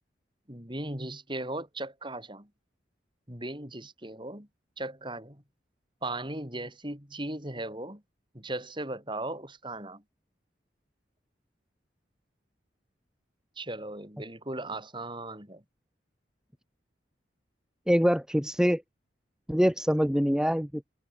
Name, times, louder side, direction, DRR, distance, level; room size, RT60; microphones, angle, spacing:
voice 1, 0.5-2.5 3.3-4.5 4.8-5.4 6.0-8.0 8.3-10.0 13.6-15.6, right 2 dB, 25° right, 7.4 m, -37 dB
voice 2, 17.9-18.8 19.5-20.8, equal, 5° right, 2.2 m, -24 dB
head